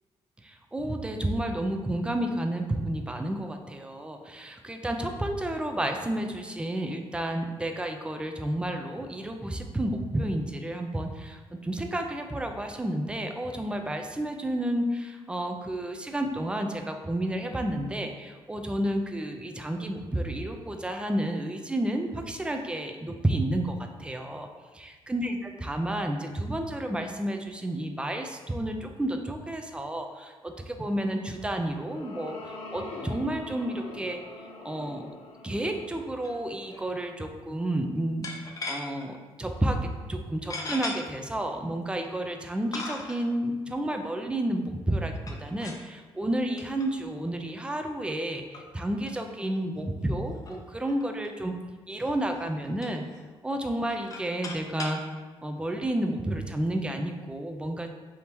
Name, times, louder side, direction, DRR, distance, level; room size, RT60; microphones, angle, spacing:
voice 1, 0.4-24.5 24.7-35.1 35.4-38.3 38.7-51.5 51.9-53.0 53.4-55.0 55.4-57.9, right 1 dB, 10° right, 4 dB, 0.4 m, -31 dB
sound 1, 31.3-37.8, left 2 dB, 70° left, 0.6 m, -44 dB
sound 2, 36.2-36.4 36.7-36.8 38.2-39.1 39.6-39.8 40.5-41.0 41.8-41.9 42.7-43.3 45.2-45.9 46.6-46.9 47.3-47.4 48.1-48.2 48.5-48.7 49.1-49.2 49.4-49.5 49.8-49.9 50.3-51.3 51.9-52.1 52.4-53.2 53.8-55.0, left 3 dB, 35° left, 0.6 m, -38 dB
3.5 x 2.8 x 4.4 m, 1.3 s
cardioid pair, 100°, 10 cm